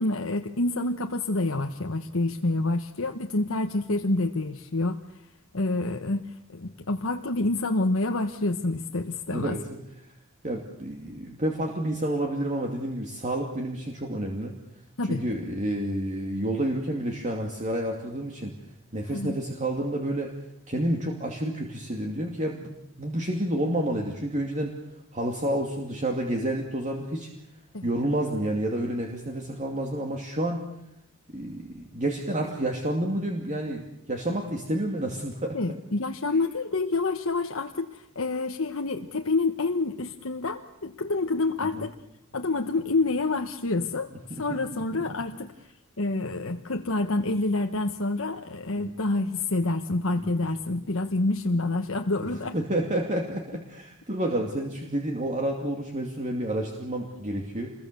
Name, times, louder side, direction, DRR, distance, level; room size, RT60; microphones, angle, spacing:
voice 1, 0.0-5.0 5.5-9.6 15.0-15.2 19.1-19.4 27.7-27.9 35.5-41.9 42.3-45.5 46.0-52.6, left 2 dB, 70° left, 4 dB, 1.2 m, -28 dB
voice 2, 10.4-14.5 15.1-18.5 18.9-20.3 20.7-24.7 25.1-27.3 27.8-30.7 31.3-35.8 41.6-41.9 48.8-48.9 50.2-50.4 52.5-57.7, right 1 dB, 35° right, 1 dB, 2.6 m, -29 dB
27.5 x 22.0 x 6.9 m, 0.81 s
head